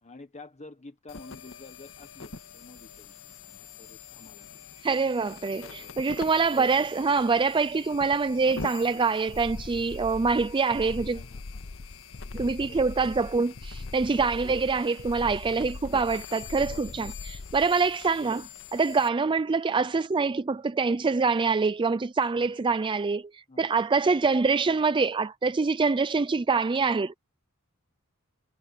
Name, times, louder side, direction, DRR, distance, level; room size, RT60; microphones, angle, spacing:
voice 1, 0.0-4.7 5.6-6.1 11.1-11.7 12.2-12.9 14.1-14.3 16.6-17.0 22.4-22.5 23.5-23.8, left 3 dB, 30° left, 1.4 m, -50 dB
sound 1, 1.1-19.1, left 5 dB, 65° left, 1.8 m, -45 dB
voice 2, 4.8-11.2 12.3-27.1, right 4 dB, 20° right, 0.4 m, -25 dB
sound 2, 9.3-17.7, left 3 dB, 50° left, 0.7 m, -41 dB
head